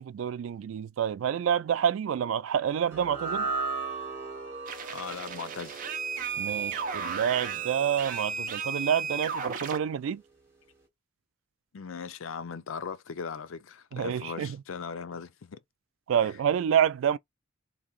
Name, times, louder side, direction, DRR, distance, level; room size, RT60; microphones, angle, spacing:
voice 1, 0.0-3.5 6.4-10.2 13.9-14.6 16.1-17.2, right 8 dB, 80° right, 0.3 m, -28 dB
sound 1, 2.9-9.3, right 4 dB, 15° right, 1.6 m, -38 dB
sound 2, 4.7-9.8, right 6 dB, 40° right, 0.7 m, -34 dB
voice 2, 4.9-5.8 11.7-15.6 16.2-16.3, left 5 dB, 85° left, 0.5 m, -39 dB
2.9 x 2.7 x 3.7 m
head